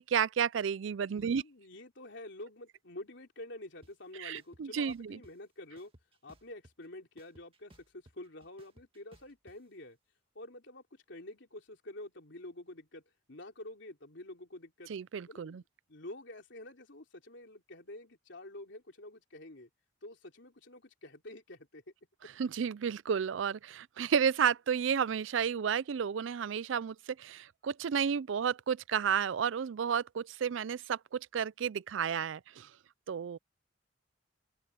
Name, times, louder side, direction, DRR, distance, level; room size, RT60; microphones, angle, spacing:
voice 1, 0.0-1.4 4.2-5.2 14.9-15.6 22.4-32.7 33.1-33.4, right 7 dB, 70° right, 0.4 m, -32 dB
voice 2, 1.1-5.9 6.2-10.0 10.4-13.0 13.3-14.9 15.3-19.7 20.0-21.8, left 1 dB, 65° left, 3.7 m, -48 dB
sound 1, 3.8-3.9 4.3-5.3 5.8-6.9 7.2-9.6, right 1 dB, 30° right, 1.9 m, -60 dB
open air
head